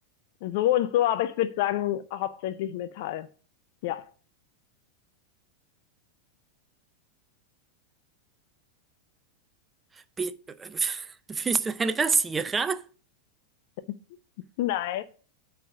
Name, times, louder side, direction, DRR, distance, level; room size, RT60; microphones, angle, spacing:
voice 1, 0.4-3.3 3.8-4.0 14.6-15.0, left 13 dB, 50° left, 0.4 m, -27 dB
voice 2, 10.2-12.8, right 4 dB, 15° right, 0.4 m, -27 dB
8.4 x 3.4 x 6.5 m
figure-of-eight pair, 90°, 0 cm